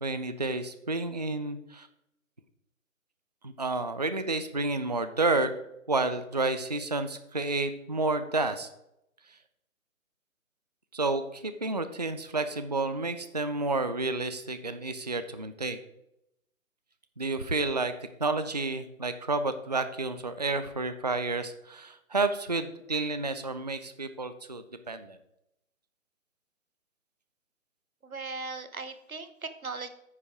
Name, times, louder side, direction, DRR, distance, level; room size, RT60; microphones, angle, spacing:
voice 1, 0.0-1.9 3.4-5.5 5.9-8.7 10.9-15.8 17.2-17.9 18.2-25.2, right 3 dB, 35° right, 11 dB, 0.4 m, -30 dB
voice 2, 28.0-29.9, right 4 dB, 90° right, 10 dB, 1.1 m, -38 dB
9.5 x 5.3 x 4.8 m, 0.83 s
figure-of-eight pair, 145°, 41 cm